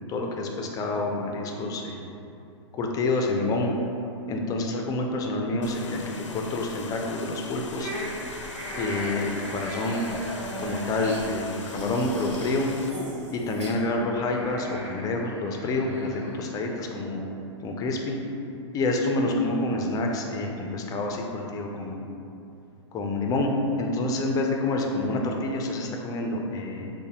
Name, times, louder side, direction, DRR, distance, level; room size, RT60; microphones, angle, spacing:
voice 1, 0.1-2.1 2.7-3.7 4.3-7.9 8.8-10.1 10.6-12.7 13.3-17.2 17.6-18.2 18.7-22.1 22.9-23.5 23.8-26.9, left 2 dB, 25° left, 1 dB, 0.5 m, -28 dB
sound 1, 5.6-12.9, left 3 dB, 80° left, 0.5 m, -41 dB
sound 2, 7.8-16.9, equal, 70° right, 0.9 m, -38 dB
6.4 x 2.2 x 2.9 m, 2.7 s
figure-of-eight pair, 105°, 16 cm